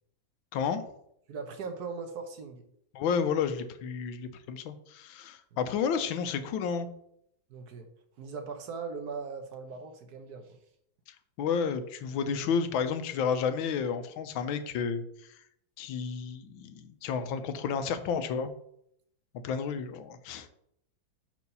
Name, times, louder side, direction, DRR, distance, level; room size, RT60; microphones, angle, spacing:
voice 1, 0.5-0.8 2.9-6.9 11.1-15.4 15.8-18.5 19.4-20.5, left 6 dB, 85° left, 10 dB, 1.5 m, -31 dB
voice 2, 1.3-2.6 7.5-7.9 8.2-10.6, right 5 dB, 60° right, 6 dB, 1.1 m, -39 dB
5.9 x 4.7 x 5.4 m, 0.71 s
omnidirectional pair, 2.1 m